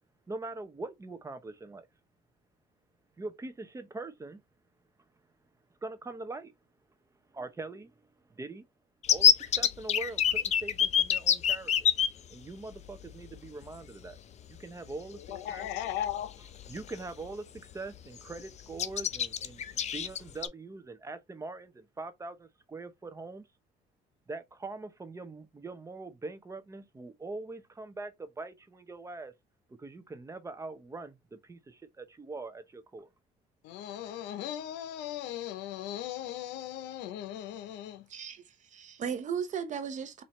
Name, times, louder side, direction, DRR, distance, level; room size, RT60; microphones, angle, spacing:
voice 1, 0.3-1.9 3.2-4.4 5.8-6.5 7.3-7.9 8.4-8.6 9.1-11.7 12.3-14.2 14.6-15.2 15.5-15.7 16.7-23.4 24.3-29.3 29.8-33.1, right 3 dB, 15° right, 0.7 m, -42 dB
sound 1, 9.0-12.1 13.1-13.2 13.5-13.6 15.3-15.4 15.8-16.1 16.5-17.2 17.6-17.7 18.0-18.4 18.8-20.5, left 8 dB, 40° left, 0.5 m, -25 dB
voice 2, 15.2-16.4 33.6-38.1, left 11 dB, 90° left, 0.6 m, -37 dB
voice 3, 38.1-40.2, right 7 dB, 45° right, 0.9 m, -36 dB
4.3 x 2.7 x 3.1 m
cardioid pair, 110°, 17 cm